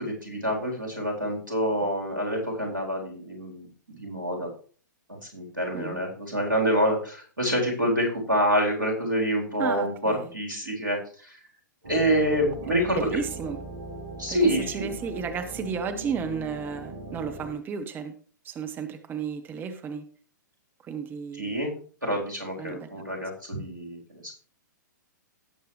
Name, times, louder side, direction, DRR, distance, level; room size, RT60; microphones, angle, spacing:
voice 1, 0.0-4.5 5.1-11.0 11.8-13.1 14.2-14.9 21.3-21.7 22.0-24.3, equal, 90° right, -1 dB, 4.0 m, -27 dB
voice 2, 9.6-10.3 12.9-13.6 14.3-18.1 18.4-20.0 20.8-21.5 22.6-23.0, right 6 dB, 20° right, 8 dB, 1.2 m, -33 dB
sound 1, 11.8-17.5, right 2 dB, 65° right, 3.4 m, -40 dB
17.5 x 6.6 x 3.3 m, 0.43 s
figure-of-eight pair, 115°, 10 cm